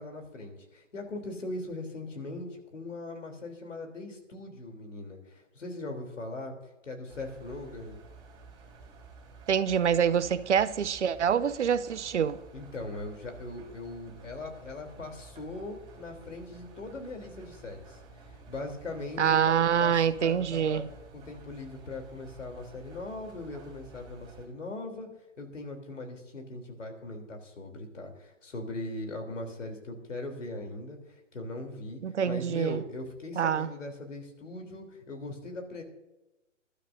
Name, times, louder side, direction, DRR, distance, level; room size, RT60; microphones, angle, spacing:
voice 1, 0.0-6.5 6.8-8.0 12.5-18.0 18.5-20.8 21.1-25.1 25.4-35.8, left 2 dB, 75° left, 3.5 m, -40 dB
Engine, 7.1-24.5, right 3 dB, 10° right, 3.7 m, -52 dB
voice 2, 9.5-12.4 19.2-20.9 32.0-32.8 33.4-33.7, right 8 dB, 65° right, 0.8 m, -26 dB
22.0 x 12.5 x 2.7 m
figure-of-eight pair, 135°, 38 cm